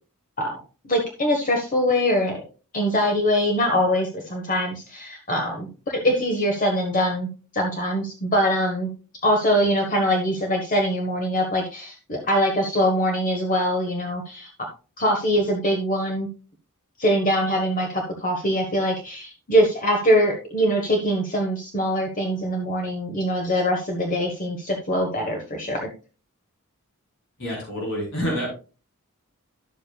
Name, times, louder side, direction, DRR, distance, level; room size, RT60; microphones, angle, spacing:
voice 1, 0.9-2.4 2.7-8.9 9.2-14.5 15.0-16.3 17.0-25.9, equal, 40° left, 2 dB, 1.3 m, -23 dB
voice 2, 27.4-28.5, equal, 60° left, -2 dB, 4.3 m, -27 dB
11.0 x 7.9 x 2.3 m, 0.33 s
head